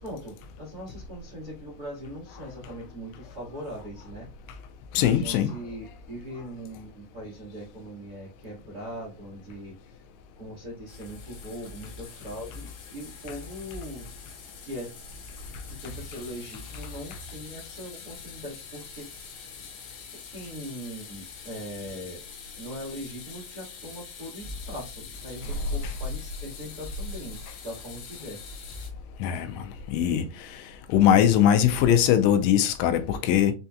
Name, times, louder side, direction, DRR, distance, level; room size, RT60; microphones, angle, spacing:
voice 1, 0.0-4.3 5.0-10.0 10.3-14.1 14.6-14.9 15.7-19.2 20.3-22.2 22.6-28.4, equal, 85° right, 0.8 m, -40 dB
voice 2, 4.9-5.5 29.2-29.6 29.9-30.2 30.9-33.5, left 10 dB, 85° left, 2.9 m, -21 dB
sound 1, 10.9-28.9, left 6 dB, 70° left, 2.7 m, -45 dB
6.6 x 2.8 x 2.3 m
omnidirectional pair, 5.1 m